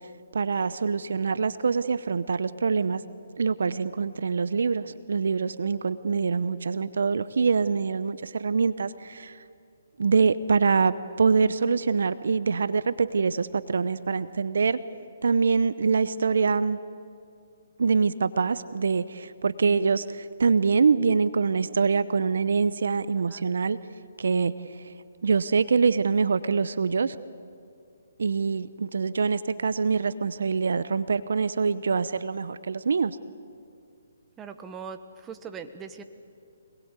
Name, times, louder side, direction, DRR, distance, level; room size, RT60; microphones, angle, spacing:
voice 1, 0.3-3.0 3.4-9.4 10.0-14.8 15.2-16.8 17.8-23.8 24.2-24.5 25.2-27.2 28.2-33.2, right 5 dB, 70° right, 15 dB, 0.8 m, -24 dB
voice 2, 34.4-36.0, right 6 dB, 15° right, 8 dB, 1.3 m, -41 dB
26.0 x 20.5 x 8.2 m, 2.4 s
hypercardioid pair, 145°, 0 cm